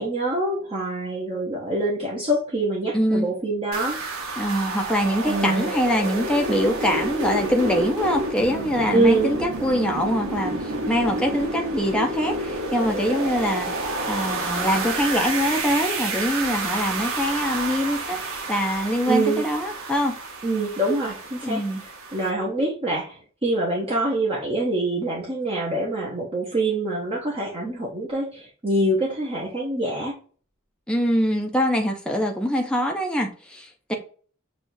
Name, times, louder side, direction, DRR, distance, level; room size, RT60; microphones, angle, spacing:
voice 1, 0.0-4.0 5.3-5.7 8.9-9.3 19.1-19.4 20.4-21.6 22.1-30.2, right 2 dB, 25° right, 0.8 m, -25 dB
voice 2, 2.9-3.3 4.4-20.1 21.4-21.8 30.9-33.9, equal, 5° left, 0.5 m, -24 dB
sound 1, 3.7-22.3, right 2 dB, 90° right, 1.0 m, -29 dB
6.2 x 2.4 x 2.6 m
head